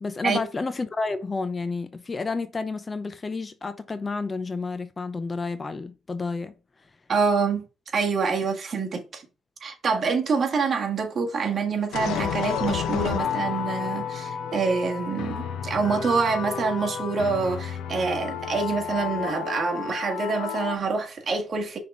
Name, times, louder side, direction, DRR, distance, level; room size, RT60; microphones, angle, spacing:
voice 1, 0.0-6.5, left 3 dB, 30° left, 0.7 m, -30 dB
voice 2, 7.1-7.7 7.9-9.2 9.6-21.8, right 4 dB, 45° right, 1.7 m, -26 dB
sound 1, 11.9-20.8, left 8 dB, 85° left, 0.8 m, -31 dB
5.7 x 3.9 x 4.8 m
cardioid pair, 90°, 0 cm